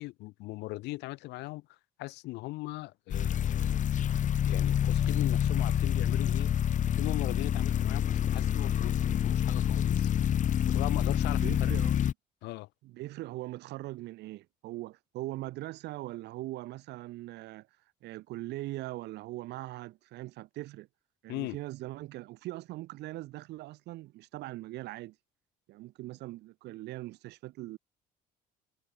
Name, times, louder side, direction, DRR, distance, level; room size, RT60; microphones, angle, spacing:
voice 1, 0.0-3.9 4.4-6.5 6.9-10.1 10.7-11.7 12.4-12.7 21.3-21.6, left 20 dB, 90° left, 6.2 m, -39 dB
sound 1, 3.1-12.1, left 9 dB, 50° left, 1.4 m, -27 dB
voice 2, 11.4-12.0 12.8-17.7 18.0-20.9 21.2-25.2 25.7-27.8, right 18 dB, 85° right, 7.4 m, -41 dB
cardioid pair, 110°, 17 cm